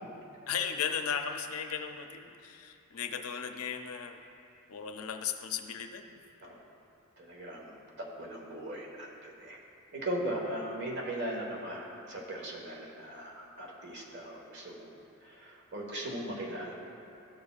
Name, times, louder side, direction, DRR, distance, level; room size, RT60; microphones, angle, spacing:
voice 1, 0.5-4.2 4.7-6.2, left 7 dB, 75° left, 6 dB, 0.5 m, -36 dB
voice 2, 7.2-9.6 9.9-14.9 15.2-16.7, right 1 dB, 55° right, -2 dB, 1.4 m, -39 dB
14.0 x 6.8 x 2.4 m, 2.7 s
head